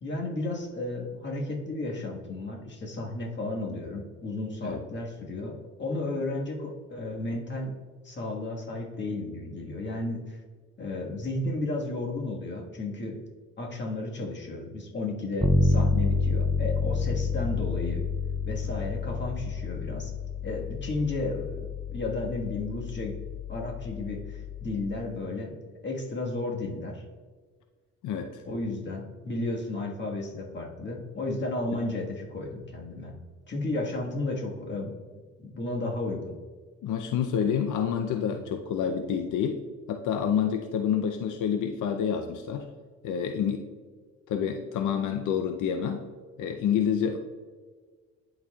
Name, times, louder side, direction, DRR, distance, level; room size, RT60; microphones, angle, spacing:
voice 1, 0.0-7.7 8.0-10.4 10.8-13.2 13.6-18.0 18.5-20.1 20.4-23.1 23.5-25.5 25.8-27.0 28.4-33.1 33.5-34.9 35.4-36.3, left 2 dB, 35° left, 0 dB, 1.5 m, -33 dB
Bass guitar, 15.4-25.2, left 4 dB, ahead, 0.4 m, -29 dB
voice 2, 28.0-28.4 36.8-42.7 43.0-43.7 44.3-46.1 46.4-47.2, left 8 dB, 80° left, 5 dB, 0.5 m, -28 dB
11.0 x 4.2 x 2.3 m, 1.5 s
cardioid pair, 90°, 30 cm